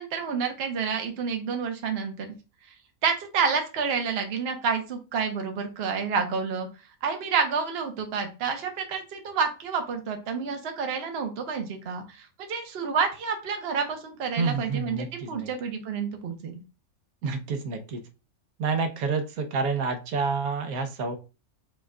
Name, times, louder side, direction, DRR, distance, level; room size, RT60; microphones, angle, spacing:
voice 1, 0.0-2.3 3.0-6.7 7.0-16.5, right 5 dB, 50° right, 5 dB, 1.0 m, -29 dB
voice 2, 14.4-15.5 17.2-18.0 18.6-21.2, right 4 dB, 80° right, 6 dB, 1.2 m, -28 dB
5.1 x 2.3 x 3.7 m, 0.31 s
omnidirectional pair, 1.5 m